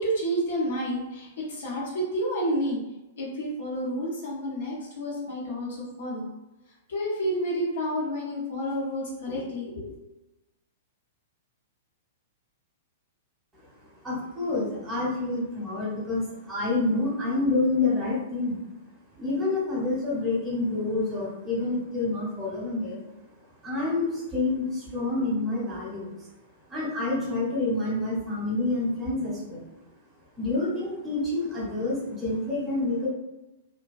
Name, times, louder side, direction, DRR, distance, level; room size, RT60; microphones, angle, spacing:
voice 1, 0.0-2.8 3.2-6.3 6.9-9.9, equal, 60° left, -4 dB, 0.8 m, -30 dB
voice 2, 14.0-18.6 19.2-23.0 23.6-26.2 26.7-29.6 30.4-33.1, left 2 dB, 15° right, -6 dB, 1.0 m, -28 dB
2.2 x 2.2 x 2.4 m, 0.99 s
figure-of-eight pair, 105°, 0 cm